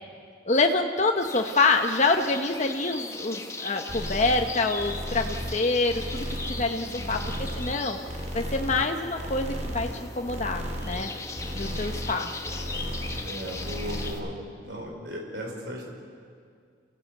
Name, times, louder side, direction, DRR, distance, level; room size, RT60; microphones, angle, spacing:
voice 1, 0.5-8.0 8.3-11.1 11.5-12.6, left 3 dB, 40° left, 4 dB, 0.9 m, -26 dB
sound 1, 1.2-14.2, left 3 dB, 15° left, 1.2 m, -39 dB
sound 2, 3.9-4.5 4.8-5.6 5.9-6.7 7.0-7.8 8.1-8.9 9.2-10.0 10.2-11.0 11.3-12.2 12.4-13.3 13.5-14.1, equal, 40° right, 3.5 m, -34 dB
voice 2, 6.8-7.4 11.4-11.9 13.2-15.9, equal, 65° right, 0 dB, 4.7 m, -38 dB
28.5 x 15.5 x 8.1 m, 2.2 s
head